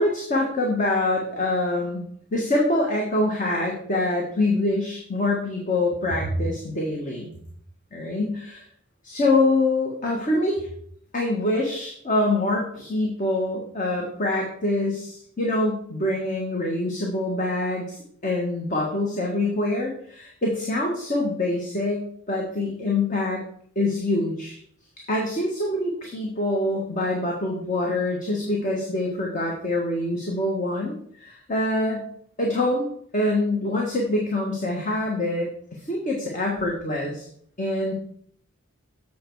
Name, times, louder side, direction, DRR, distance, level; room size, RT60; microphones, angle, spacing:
voice 1, 0.0-2.0 2.3-7.3 7.9-8.6 9.0-10.7 11.1-23.4 23.7-24.6 25.1-32.0 32.4-32.8 33.1-37.3 37.6-37.9, left 2 dB, 35° left, -1 dB, 1.5 m, -25 dB
7.7 x 6.8 x 4.6 m, 0.64 s
head